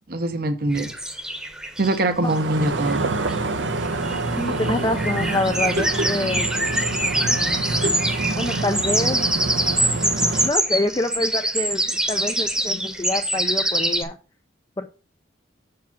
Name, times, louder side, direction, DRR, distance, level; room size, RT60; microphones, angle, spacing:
voice 1, 0.1-0.9 1.8-3.1, right 2 dB, 50° right, 7 dB, 0.8 m, -23 dB
sound 1, 0.7-2.3 2.9-3.0 3.3-3.4 3.6-14.0, right 1 dB, 5° right, 1.0 m, -25 dB
sound 2, 2.2-10.5, right 2 dB, 75° right, 0.8 m, -26 dB
voice 2, 4.4-6.5 8.4-9.3 10.4-14.2 14.8-14.9, left 2 dB, 20° left, 5 dB, 0.4 m, -26 dB
7.2 x 4.8 x 5.8 m, 0.34 s
head